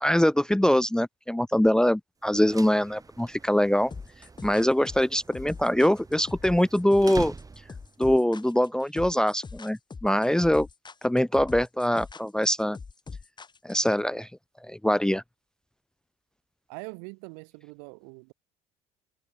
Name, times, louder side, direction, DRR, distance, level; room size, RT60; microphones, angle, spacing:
voice 1, 0.0-3.9 4.4-7.3 8.0-10.7 11.0-12.8 13.6-14.3 14.6-15.2, left 1 dB, 5° left, 0.9 m, -23 dB
sound 1, 2.2-8.0, right 4 dB, 20° right, 2.9 m, -43 dB
sound 2, 3.9-13.9, left 4 dB, 25° left, 4.8 m, -42 dB
voice 2, 16.7-18.3, right 40 dB or more, 65° right, 3.5 m, -42 dB
figure-of-eight pair, 55°, 18 cm